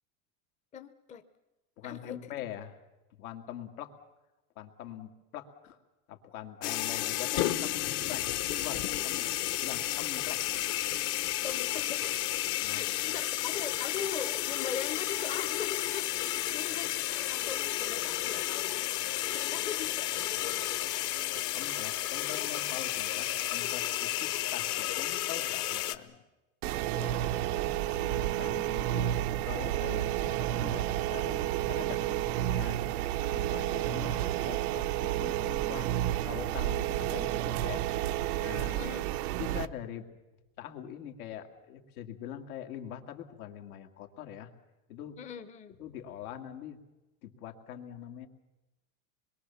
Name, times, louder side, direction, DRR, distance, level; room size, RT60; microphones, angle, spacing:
voice 1, 0.7-1.2 1.8-2.2 11.4-18.9 19.3-20.6 26.9-27.8 33.5-33.8 38.7-39.1 45.2-45.8, left 7 dB, 15° left, 10 dB, 0.7 m, -41 dB
voice 2, 1.8-2.8 3.2-3.9 4.6-5.8 6.1-8.3 8.6-9.3 9.6-10.4 12.6-13.1 21.5-26.2 28.0-35.9 36.2-37.8 38.4-38.8 39.4-40.1 40.6-44.5 44.9-45.2 45.8-46.8 47.2-48.3, left 10 dB, 85° left, 5 dB, 2.6 m, -43 dB
sound 1, 6.6-26.0, left 14 dB, 45° left, 1.0 m, -32 dB
sound 2, 26.6-39.7, right 13 dB, 90° right, 0.8 m, -31 dB
25.5 x 22.0 x 7.1 m, 1.1 s
supercardioid pair, 160°, 43 cm